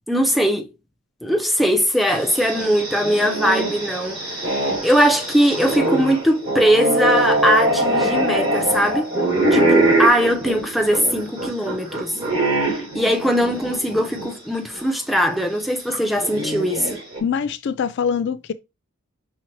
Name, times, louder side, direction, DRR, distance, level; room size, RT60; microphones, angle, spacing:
voice 1, 0.1-0.7 1.2-9.1 9.5-12.2 12.9-17.0, equal, ahead, 0.6 m, -20 dB
sound 1, 2.1-14.3 14.7-14.8 15.9-17.2, right 1 dB, 25° right, 3.1 m, -23 dB
voice 2, 17.2-18.5, left 7 dB, 55° left, 0.3 m, -23 dB
5.6 x 2.9 x 3.1 m
head